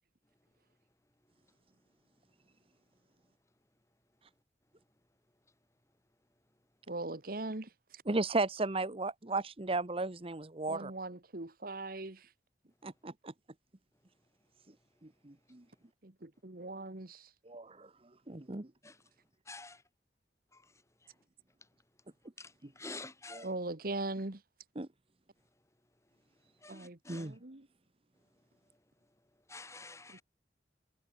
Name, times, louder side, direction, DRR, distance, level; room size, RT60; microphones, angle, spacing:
voice 1, 6.9-8.0 10.7-12.3 16.0-17.3 23.4-24.4 26.7-27.7 30.1-30.2, right 2 dB, 55° right, 1.6 m, -40 dB
voice 2, 8.1-10.9 12.8-13.3 15.0-15.6 17.4-17.9 18.3-18.7 22.6-22.7 23.3-23.5 24.8-24.9 27.1-27.4, right 2 dB, 30° right, 1.1 m, -35 dB
voice 3, 19.5-19.8 22.4-23.5 26.6-27.3 29.5-30.2, left 3 dB, 15° left, 4.6 m, -48 dB
head